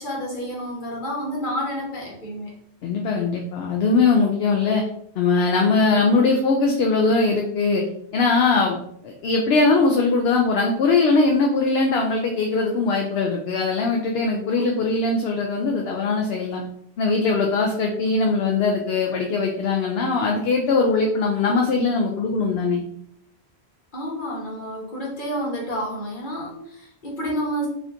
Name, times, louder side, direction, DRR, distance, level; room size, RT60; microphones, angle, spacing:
voice 1, 0.0-2.5 14.6-14.7 23.9-27.7, equal, 50° left, -3 dB, 1.3 m, -29 dB
voice 2, 2.8-4.8 5.2-7.8 8.1-8.8 9.0-16.6 17.0-22.8, left 3 dB, 70° left, 1 dB, 0.8 m, -21 dB
4.1 x 2.8 x 2.5 m, 0.70 s
omnidirectional pair, 1.1 m